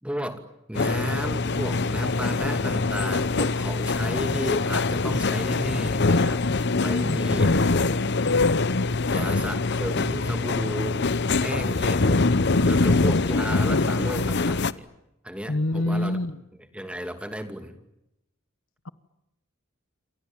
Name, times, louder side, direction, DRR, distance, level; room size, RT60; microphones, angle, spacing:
voice 1, 0.0-6.4 6.8-7.5 9.1-11.0 11.4-12.4 12.6-14.9 15.2-16.2 16.7-17.8, equal, 5° right, 8 dB, 2.6 m, -33 dB
sound 1, 0.8-14.7, left 3 dB, 55° left, 0.9 m, -23 dB
voice 2, 7.0-8.3 15.5-16.4, left 1 dB, 80° left, 14 dB, 1.3 m, -28 dB
29.0 x 25.5 x 7.5 m, 0.87 s
head